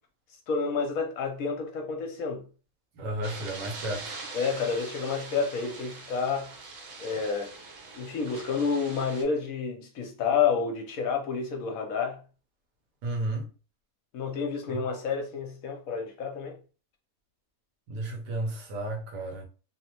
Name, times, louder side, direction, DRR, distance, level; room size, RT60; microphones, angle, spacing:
voice 1, 0.5-2.4 4.3-6.5 7.0-7.5 7.9-12.2 14.1-16.6, left 5 dB, 65° left, 0.9 m, -29 dB
voice 2, 3.0-4.1 13.0-13.5 14.7-14.8 17.9-19.4, right 1 dB, 85° right, 1.4 m, -33 dB
sound 1, 3.2-9.2, right 3 dB, 60° right, 0.9 m, -43 dB
3.2 x 2.0 x 2.8 m
omnidirectional pair, 1.7 m